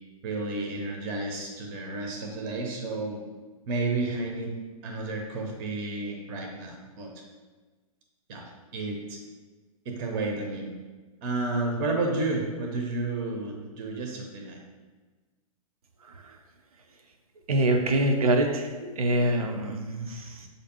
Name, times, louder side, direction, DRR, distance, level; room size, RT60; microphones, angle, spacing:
voice 1, 0.2-3.2 3.7-4.5 4.8-7.2 8.3-8.4 8.7-9.2 9.8-10.7 11.2-14.6, right 2 dB, 35° right, 2 dB, 0.6 m, -31 dB
voice 2, 16.0-16.4 17.5-20.5, right 1 dB, 75° right, 4 dB, 0.5 m, -25 dB
6.3 x 2.6 x 2.7 m, 1.3 s
figure-of-eight pair, 110°, 19 cm